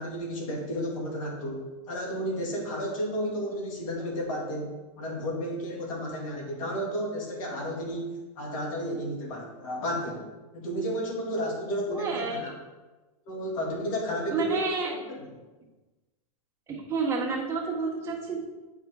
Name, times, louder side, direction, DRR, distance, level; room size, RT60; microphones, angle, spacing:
voice 1, 0.0-10.3 10.5-12.5 13.3-14.6 14.9-15.3, equal, 60° left, -1 dB, 2.4 m, -32 dB
voice 2, 11.9-12.5 14.3-14.9 16.7-18.4, right 4 dB, 15° right, -5 dB, 1.6 m, -29 dB
8.0 x 5.4 x 3.7 m, 1.2 s
supercardioid pair, 155°, 19 cm